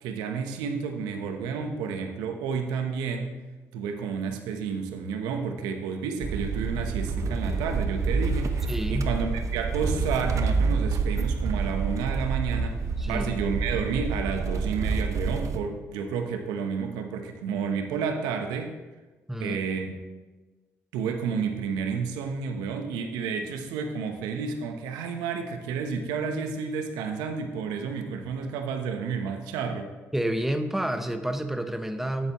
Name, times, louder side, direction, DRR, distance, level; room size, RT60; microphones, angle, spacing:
voice 1, 0.0-3.4 3.7-12.8 13.1-18.7 19.4-20.0 20.9-29.9, right 6 dB, 85° right, 5 dB, 0.9 m, -31 dB
sound 1, 6.2-15.6, right 4 dB, 50° right, 0.8 m, -28 dB
voice 2, 8.7-9.1 13.0-13.2 19.3-19.6 30.1-32.3, right 1 dB, 5° right, 8 dB, 0.9 m, -29 dB
10.5 x 8.0 x 3.0 m, 1.2 s
supercardioid pair, 55°, 7 cm